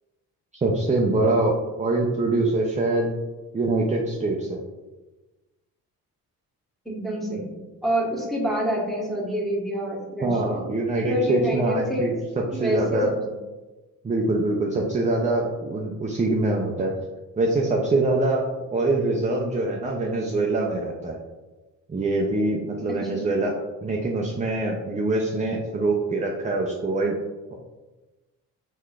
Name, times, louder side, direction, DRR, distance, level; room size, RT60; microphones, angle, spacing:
voice 1, 0.6-3.1 3.5-4.6 10.2-12.1 12.6-13.1 14.0-16.9 17.4-18.4 18.7-21.2 21.9-23.5 23.8-27.1 27.5-27.6, right 2 dB, 20° right, -1 dB, 0.5 m, -24 dB
voice 2, 6.8-7.5 7.8-10.6 11.1-12.1 12.5-13.4 22.9-23.3, equal, ahead, -4 dB, 1.2 m, -27 dB
3.6 x 3.1 x 2.4 m, 1.2 s
supercardioid pair, 50°, 41 cm